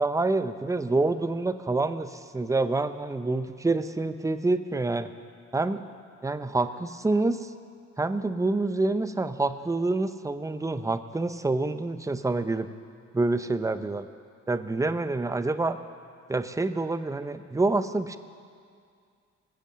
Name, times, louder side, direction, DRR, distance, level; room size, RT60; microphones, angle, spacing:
voice 1, 0.0-5.1 5.5-5.8 6.2-7.5 8.0-12.7 13.1-14.1 14.5-15.8 16.3-18.2, right 2 dB, 10° right, 11 dB, 0.7 m, -27 dB
20.0 x 8.2 x 7.5 m, 2.2 s
cardioid pair, 90°, 30 cm